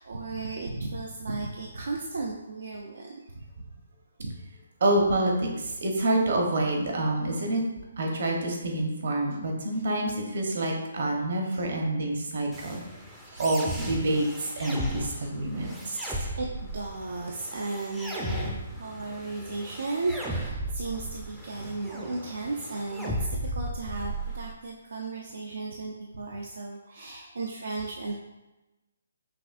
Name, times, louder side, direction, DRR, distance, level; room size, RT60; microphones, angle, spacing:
voice 1, 0.0-3.4 4.2-4.4 11.4-11.7 12.5-12.7 13.2-13.6 14.2-14.3 15.2-28.1, right 3 dB, 80° right, -1 dB, 0.5 m, -35 dB
voice 2, 4.8-7.6 8.0-12.8 13.4-16.0, right 1 dB, 60° right, 1 dB, 1.0 m, -27 dB
sound 1, 12.5-24.5, right 1 dB, 5° right, 0.4 m, -36 dB
5.8 x 2.6 x 2.5 m, 1.0 s
hypercardioid pair, 155°, 0 cm